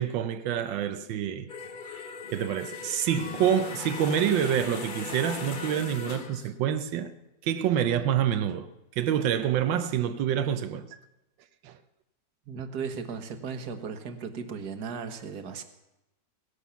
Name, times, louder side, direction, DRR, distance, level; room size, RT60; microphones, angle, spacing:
voice 1, 0.0-1.5 2.0-7.1 7.4-11.0 11.6-11.8, right 9 dB, 90° right, 1.5 m, -27 dB
sound 1, 1.5-6.5, left 4 dB, 35° left, 1.0 m, -39 dB
Acoustic guitar / Strum, 3.1-7.1, left 6 dB, 50° left, 0.5 m, -46 dB
voice 2, 12.5-15.6, right 5 dB, 60° right, 1.8 m, -36 dB
17.0 x 11.5 x 7.0 m
omnidirectional pair, 2.0 m